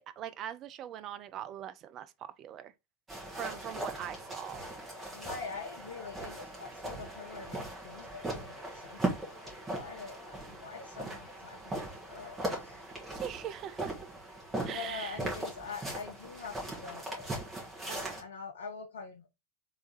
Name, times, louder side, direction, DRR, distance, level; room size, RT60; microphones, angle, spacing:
voice 1, 0.0-2.1 2.4-2.7 3.4-4.6 13.1-14.1 14.6-15.2 17.9-18.2, right 10 dB, 35° right, 0.4 m, -41 dB
sound 1, 3.1-18.2, right 1 dB, 15° right, 1.7 m, -39 dB
voice 2, 5.1-12.8 14.6-17.3 17.8-19.3, left 5 dB, 65° left, 0.7 m, -45 dB
3.5 x 3.1 x 3.9 m
figure-of-eight pair, 90°, 0 cm